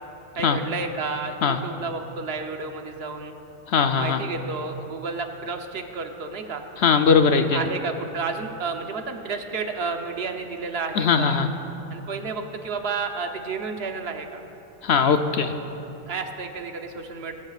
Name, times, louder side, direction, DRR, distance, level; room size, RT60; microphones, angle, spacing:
voice 1, 0.4-3.3 4.0-6.7 7.3-11.4 11.9-14.4 16.1-17.3, right 4 dB, 65° right, 4 dB, 1.2 m, -31 dB
voice 2, 3.7-4.2 6.8-7.6 11.0-11.5 14.8-15.5, left 6 dB, 70° left, 7 dB, 0.9 m, -20 dB
21.0 x 15.5 x 2.4 m, 3.0 s
omnidirectional pair, 1.1 m